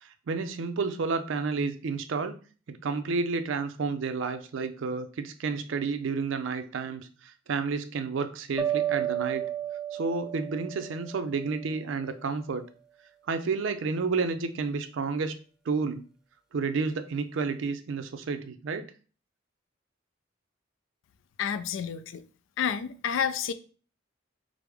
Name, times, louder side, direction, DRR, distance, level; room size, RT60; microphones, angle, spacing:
voice 1, 0.0-2.3 2.7-9.4 9.9-12.6 13.3-15.4 15.7-16.0 16.5-18.9, right 4 dB, 80° right, 0.4 m, -31 dB
sound 1, 8.6-11.7, right 10 dB, 5° right, 0.3 m, -32 dB
voice 2, 21.4-22.2 22.6-23.5, left 7 dB, 85° left, 0.3 m, -29 dB
4.7 x 2.0 x 3.4 m
head